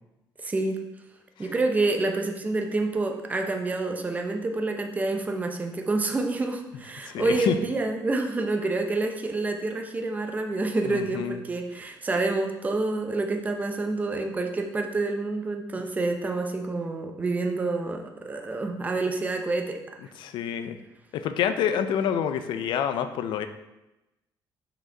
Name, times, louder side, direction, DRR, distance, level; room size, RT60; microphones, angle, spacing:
voice 1, 0.4-0.8 1.4-19.8, right 3 dB, 20° right, 4 dB, 0.8 m, -28 dB
voice 2, 7.0-7.6 10.8-11.4 18.7-18.8 20.2-20.8 21.1-23.5, left 8 dB, 75° left, 9 dB, 0.6 m, -28 dB
6.3 x 5.1 x 4.5 m, 0.96 s
cardioid pair, 135°, 8 cm